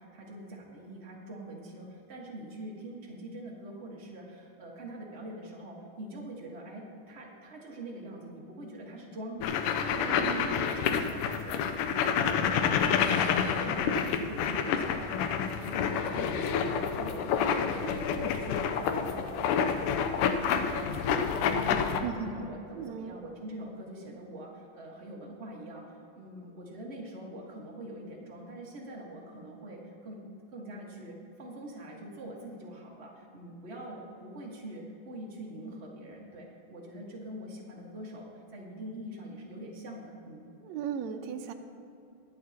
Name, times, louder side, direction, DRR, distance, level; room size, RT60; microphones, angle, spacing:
voice 1, 0.0-17.9 18.1-19.4 19.8-40.4, right 1 dB, 45° right, -3 dB, 0.8 m, -44 dB
sound 1, 9.4-22.0, left 7 dB, 80° left, 2.1 m, -28 dB
voice 2, 10.0-10.6 22.0-22.5 22.8-23.2 40.6-41.5, right 7 dB, 80° right, 5 dB, 1.6 m, -36 dB
23.0 x 8.5 x 2.9 m, 2.7 s
omnidirectional pair, 3.9 m